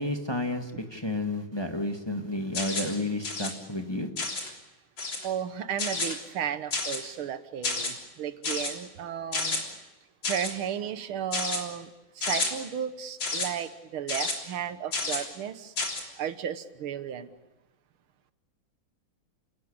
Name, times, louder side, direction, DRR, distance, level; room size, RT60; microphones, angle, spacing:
voice 1, 0.0-4.1, left 1 dB, 15° left, 4 dB, 1.7 m, -31 dB
sound 1, 2.5-3.0 3.2-3.5 4.2-4.5 5.0-5.3 5.8-6.2 6.7-7.1 7.6-7.9 8.4-8.7 9.3-9.6 10.2-10.5 11.3-11.6 12.2-12.5 13.2-13.5 14.1-14.3 14.9-15.2 15.8-16.0, left 3 dB, 60° left, 4.2 m, -30 dB
voice 2, 5.2-9.6 10.3-15.7 16.2-17.3, right 9 dB, 90° right, 11 dB, 2.0 m, -34 dB
30.0 x 17.5 x 8.6 m, 1.1 s
omnidirectional pair, 2.3 m